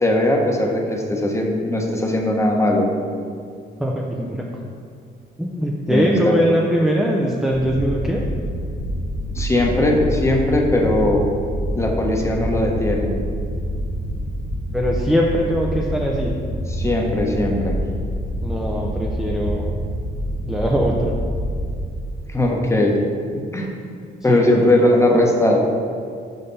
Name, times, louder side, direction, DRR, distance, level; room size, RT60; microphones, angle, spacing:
voice 1, 0.0-2.9 5.9-6.4 9.3-11.2 11.7-13.1 16.7-17.8 22.3-23.0 23.3-23.7 24.2-25.6, left 1 dB, 15° left, 0 dB, 1.0 m, -19 dB
voice 2, 3.8-4.4 5.4-8.2 14.7-16.3 18.4-19.7 20.5-21.2 24.3-24.6, equal, 5° right, -2 dB, 0.6 m, -21 dB
sound 1, 7.5-21.8, equal, 45° left, 1.3 m, -26 dB
5.5 x 5.4 x 4.1 m, 2.3 s
cardioid pair, 90°, 20 cm